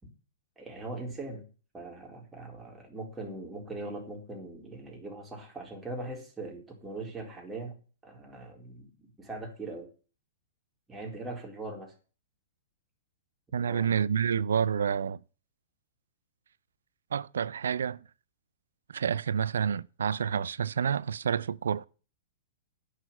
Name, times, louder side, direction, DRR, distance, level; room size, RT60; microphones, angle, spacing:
voice 1, 0.6-1.5 1.7-7.7 8.0-9.9 10.9-11.9 13.5-13.9, right 2 dB, 10° right, 4.0 m, -41 dB
voice 2, 13.5-15.2 17.1-18.0 18.9-21.9, right 7 dB, 75° right, 0.5 m, -29 dB
9.7 x 6.6 x 8.2 m
hypercardioid pair, 115°, 0 cm